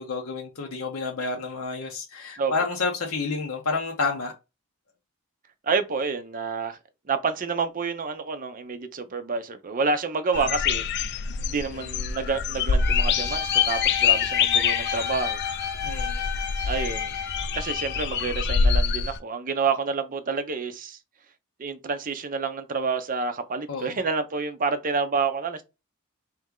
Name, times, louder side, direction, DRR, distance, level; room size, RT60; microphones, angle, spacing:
voice 1, 0.0-4.3 11.7-11.9 15.8-16.3 23.7-24.0, left 4 dB, 70° left, 0.8 m, -30 dB
voice 2, 5.6-6.8 7.1-10.8 11.5-15.4 16.6-17.1 17.5-21.0 21.6-25.6, right 4 dB, 40° right, 0.6 m, -28 dB
sound 1, 10.3-19.2, left 6 dB, 50° left, 0.4 m, -25 dB
Bowed string instrument, 12.8-18.1, left 6 dB, 15° left, 1.0 m, -33 dB
3.4 x 3.1 x 3.7 m
head